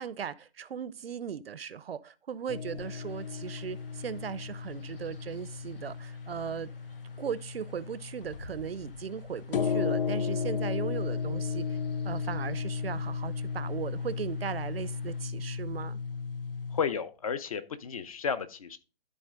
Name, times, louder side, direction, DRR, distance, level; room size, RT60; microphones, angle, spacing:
voice 1, 0.0-6.7 7.2-11.8 12.0-16.0, right 8 dB, 85° right, 0.7 m, -37 dB
sound 1, 2.5-16.8, left 5 dB, 70° left, 0.8 m, -35 dB
Chirp tweet / Wind / Stream, 2.8-15.2, left 2 dB, 85° left, 5.1 m, -56 dB
voice 2, 16.7-18.8, left 6 dB, 35° left, 0.7 m, -32 dB
12.5 x 4.4 x 3.7 m
hypercardioid pair, 165°, 29 cm